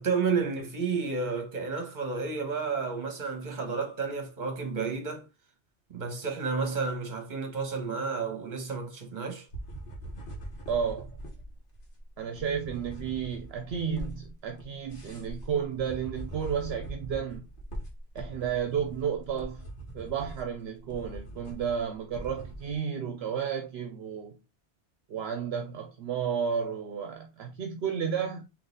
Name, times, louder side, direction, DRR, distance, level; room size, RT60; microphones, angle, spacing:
voice 1, 0.0-5.3 5.9-9.5, right 5 dB, 45° right, 1.2 m, -31 dB
sound 1, 9.5-22.7, right 1 dB, 50° left, 1.3 m, -42 dB
voice 2, 10.7-11.2 12.2-17.5 18.1-19.7 19.9-24.4 25.1-28.5, right 7 dB, 70° right, 0.8 m, -32 dB
3.9 x 2.9 x 3.8 m
omnidirectional pair, 1.2 m